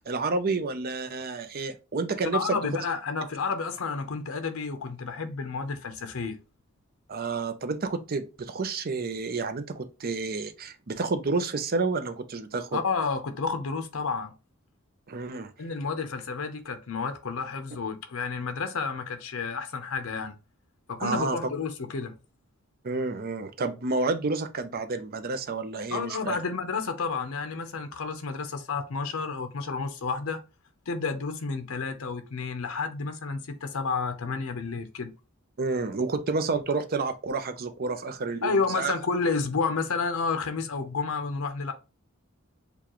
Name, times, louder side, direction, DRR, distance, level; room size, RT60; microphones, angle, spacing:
voice 1, 0.1-2.6 7.1-12.8 15.1-15.5 21.0-21.4 22.8-26.4 35.6-38.9, right 3 dB, 45° right, 0.6 m, -30 dB
voice 2, 2.2-6.4 12.7-14.3 15.6-20.3 20.9-22.1 25.9-30.4 30.9-35.1 38.4-41.7, left 4 dB, 80° left, 0.7 m, -30 dB
6.9 x 2.3 x 3.0 m
head